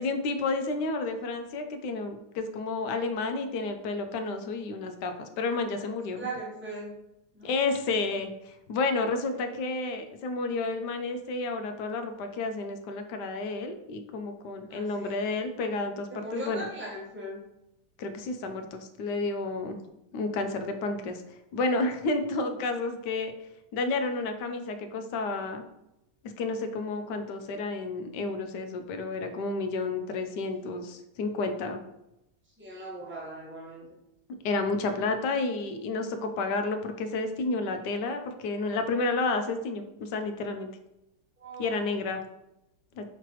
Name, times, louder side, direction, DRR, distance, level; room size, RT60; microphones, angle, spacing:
voice 1, 0.0-6.2 7.4-16.6 18.0-19.8 20.1-21.2 21.5-23.3 23.7-25.6 26.4-31.8 34.4-40.7 41.6-42.2 43.0-43.1, left 3 dB, 80° left, 6 dB, 1.2 m, -31 dB
voice 2, 5.8-6.9 7.3-7.5 14.7-15.1 16.1-17.4 22.4-22.5 32.6-34.0 41.4-41.9, right 1 dB, 10° right, -4 dB, 0.9 m, -39 dB
5.8 x 3.1 x 3.0 m, 0.88 s
omnidirectional pair, 1.8 m